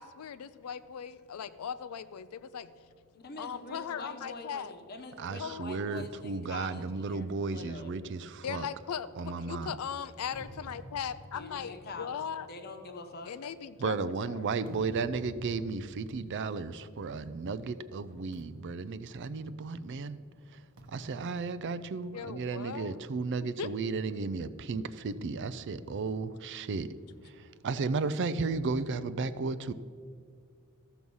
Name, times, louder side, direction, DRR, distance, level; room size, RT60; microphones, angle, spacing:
voice 1, 0.0-2.7 3.4-4.7 5.4-5.6 8.4-9.1 9.4-12.5 13.3-14.0 14.3-14.5 22.1-23.0 23.4-23.7, left 7 dB, 80° left, 13 dB, 0.4 m, -38 dB
voice 2, 3.1-7.9 11.3-13.3, left 3 dB, 45° left, 5 dB, 1.0 m, -45 dB
voice 3, 5.2-8.7 9.2-9.8 13.8-20.2 20.5-20.6 20.9-26.9 27.2-29.7, right 4 dB, 55° right, 14 dB, 0.4 m, -34 dB
sound 1, 6.0-9.6 10.1-17.5 17.7-18.0 18.3-19.9 20.8-22.5, right 1 dB, 75° right, 1.1 m, -52 dB
14.0 x 6.2 x 5.4 m, 2.2 s
head